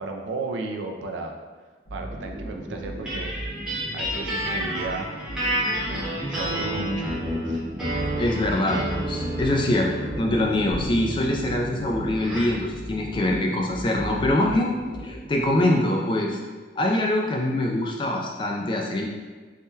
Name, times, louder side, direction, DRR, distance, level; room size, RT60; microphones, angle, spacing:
voice 1, 0.0-1.3 1.9-3.3 3.9-5.1 6.3-7.1 7.5-7.6, right 3 dB, 75° right, 3 dB, 0.4 m, -34 dB
sound 1, 1.9-15.6, equal, 45° left, 0.9 m, -37 dB
sound 2, 3.1-12.6, right 1 dB, 5° right, 0.8 m, -30 dB
voice 2, 8.2-9.9 10.2-14.8 15.0-16.4 16.8-19.1, left 1 dB, 25° left, 0 dB, 0.3 m, -24 dB
sound 3, 10.7-13.2, equal, 75° left, 1.0 m, -39 dB
3.5 x 2.2 x 2.7 m, 1.4 s
head